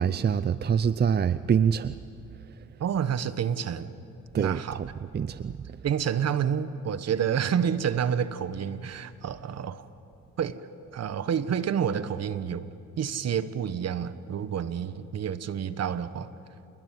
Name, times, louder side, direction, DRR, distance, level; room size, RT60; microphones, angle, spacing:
voice 1, 0.0-1.9 4.3-4.9 5.1-5.5, right 7 dB, 35° right, 14 dB, 0.6 m, -25 dB
voice 2, 2.8-3.9 4.4-4.8 5.8-9.9 10.4-10.6 10.9-16.3, right 8 dB, 55° right, 13 dB, 1.3 m, -29 dB
28.5 x 20.5 x 9.4 m, 2.6 s
cardioid pair, 90°, 30 cm